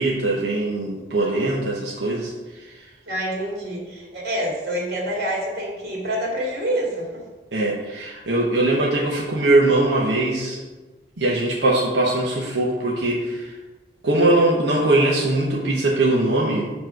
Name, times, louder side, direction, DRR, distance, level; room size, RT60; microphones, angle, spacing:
voice 1, 0.0-2.9 7.5-10.6 11.2-13.5 14.0-16.7, right 2 dB, 90° right, -4 dB, 1.0 m, -21 dB
voice 2, 1.2-1.6 3.1-7.2, right 1 dB, 60° right, -2 dB, 2.4 m, -27 dB
7.2 x 3.1 x 6.1 m, 1.2 s
head